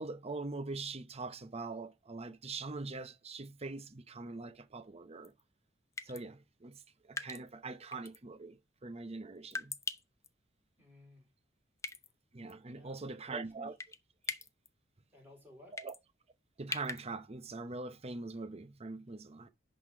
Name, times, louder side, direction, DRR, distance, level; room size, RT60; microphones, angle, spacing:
voice 1, 0.0-5.3 6.0-9.8 12.3-13.7 15.7-15.9 16.6-19.5, right 3 dB, 30° right, 0.7 m, -43 dB
sound 1, 5.2-5.4 6.0-6.2 7.2-7.5 7.9-8.2 9.5-10.3 11.8-12.1 12.5-12.6 13.8-14.0 14.2-14.7 15.8-16.0 16.7-17.0, left 4 dB, 15° left, 0.5 m, -40 dB
voice 2, 10.8-11.3 12.7-13.7 15.1-15.8, left 2 dB, 10° right, 4.0 m, -59 dB
10.5 x 4.0 x 5.0 m
head